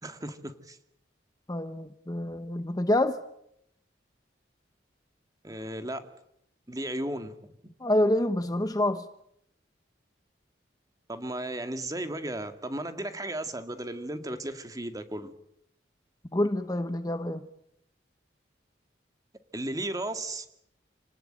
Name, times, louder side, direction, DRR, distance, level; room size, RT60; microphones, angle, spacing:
voice 1, 0.0-0.8 5.4-6.1 6.7-7.3 11.1-15.3 19.5-20.5, right 1 dB, 20° right, 8 dB, 2.2 m, -35 dB
voice 2, 1.5-3.2 7.8-9.1 16.3-17.4, left 1 dB, 20° left, 10 dB, 1.0 m, -27 dB
29.0 x 19.5 x 8.9 m, 0.77 s
head